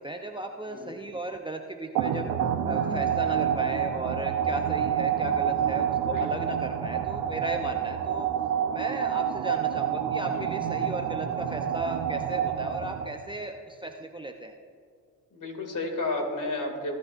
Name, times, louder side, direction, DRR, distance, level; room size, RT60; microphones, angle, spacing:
voice 1, 0.0-2.3 2.6-8.3 8.7-14.6, right 2 dB, 10° right, 3 dB, 0.8 m, -36 dB
voice 2, 0.6-1.0 6.0-6.3 10.3-10.6 15.3-17.0, left 2 dB, 45° left, 3 dB, 2.6 m, -32 dB
sound 1, 2.0-13.3, right 9 dB, 80° right, 1.1 m, -28 dB
18.5 x 11.5 x 2.6 m, 2.2 s
supercardioid pair, 60°, 42 cm